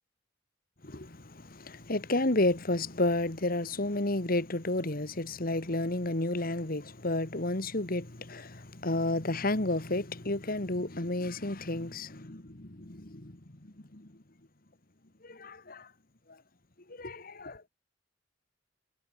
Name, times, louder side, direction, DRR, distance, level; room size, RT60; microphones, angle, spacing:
voice 1, 0.8-14.1 15.2-15.9 16.9-17.6, left 2 dB, 50° left, 2.3 m, -32 dB
head